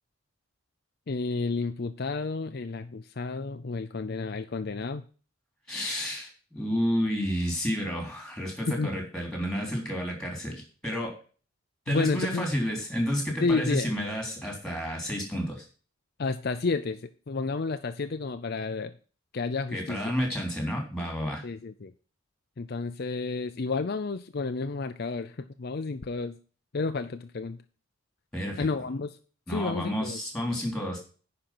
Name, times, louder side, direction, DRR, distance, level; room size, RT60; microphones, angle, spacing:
voice 1, 1.1-5.0 8.7-8.9 11.9-12.5 13.4-13.9 16.2-18.9 19.3-20.0 21.4-21.9 22.6-26.4 26.7-27.6 28.6-29.2 29.5-30.2, left 3 dB, 50° left, 9 dB, 0.5 m, -31 dB
voice 2, 5.7-11.1 11.9-15.7 19.7-21.4 28.3-28.7 29.5-31.0, equal, 5° left, 2 dB, 3.5 m, -30 dB
9.9 x 5.3 x 6.0 m, 0.38 s
head